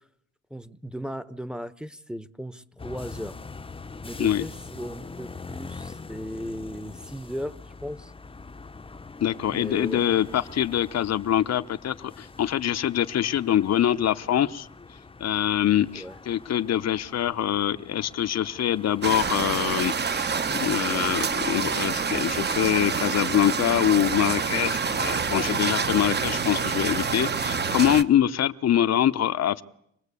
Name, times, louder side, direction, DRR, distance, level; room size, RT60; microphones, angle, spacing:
voice 1, 0.5-3.4 4.0-8.1 9.5-10.0 15.9-16.2, equal, 5° right, 1.1 m, -36 dB
sound 1, 2.8-19.8, left 4 dB, 20° left, 0.9 m, -43 dB
voice 2, 9.2-14.7 15.2-29.6, left 10 dB, 60° left, 0.9 m, -24 dB
sound 2, 19.0-28.0, right 5 dB, 35° right, 1.2 m, -27 dB
26.0 x 19.0 x 8.4 m
cardioid pair, 90°, 30 cm